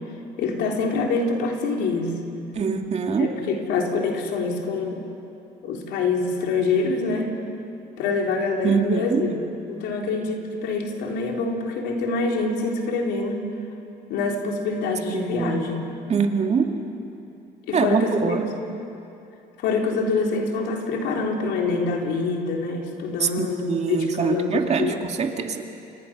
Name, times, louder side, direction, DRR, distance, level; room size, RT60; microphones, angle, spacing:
voice 1, 0.4-2.2 3.2-5.0 5.6-7.3 8.0-9.4 9.7-13.5 14.1-15.9 17.7-18.4 19.6-25.0, left 4 dB, 85° left, 1 dB, 3.5 m, -25 dB
voice 2, 2.5-3.3 8.6-9.2 15.1-15.6 16.1-16.7 17.7-18.5 23.2-25.6, right 6 dB, 40° right, 4 dB, 2.2 m, -24 dB
29.5 x 25.5 x 6.1 m, 2.8 s
cardioid pair, 110°, 17 cm